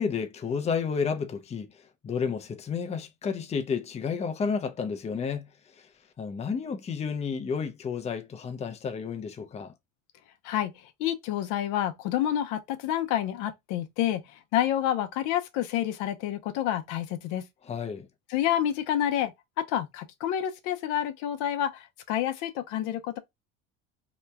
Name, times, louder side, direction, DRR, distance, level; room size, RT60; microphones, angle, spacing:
voice 1, 0.0-5.9 6.2-9.7 17.6-18.1, left 6 dB, 20° left, 0.5 m, -31 dB
voice 2, 11.0-17.4 18.3-19.3 19.6-23.2, left 11 dB, 75° left, 0.6 m, -28 dB
2.9 x 2.2 x 3.4 m
supercardioid pair, 105°, 31 cm